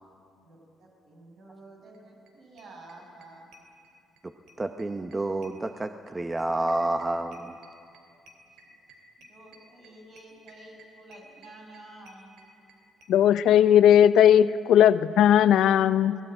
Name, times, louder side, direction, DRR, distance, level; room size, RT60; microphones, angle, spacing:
voice 1, 0.4-3.5 9.3-12.3, right 2 dB, 65° right, 0 dB, 6.8 m, -50 dB
sound 1, 1.9-2.0 2.3-2.4 2.6-4.2 4.5-13.7 14.0-14.1 14.3-14.4 14.6-14.7, right 1 dB, 85° right, 2.8 m, -55 dB
voice 2, 4.6-7.5, right 2 dB, 20° right, 7 dB, 0.8 m, -29 dB
voice 3, 13.1-16.2, left 10 dB, 80° left, 14 dB, 0.6 m, -18 dB
21.0 x 19.0 x 9.1 m, 2.5 s
cardioid pair, 90°, 0 cm